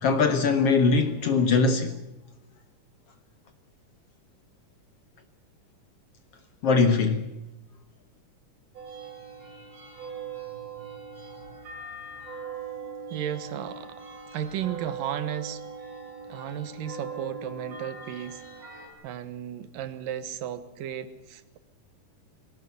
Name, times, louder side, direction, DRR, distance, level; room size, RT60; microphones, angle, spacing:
voice 1, 0.0-1.9 6.6-7.2, left 4 dB, 60° left, 1.7 m, -21 dB
sound 1, 8.7-18.9, right 5 dB, 50° right, 7.4 m, -40 dB
voice 2, 13.1-14.0 14.3-15.6 16.3-18.4 19.0-21.6, right 10 dB, 90° right, 2.9 m, -34 dB
20.0 x 18.0 x 8.4 m
omnidirectional pair, 3.8 m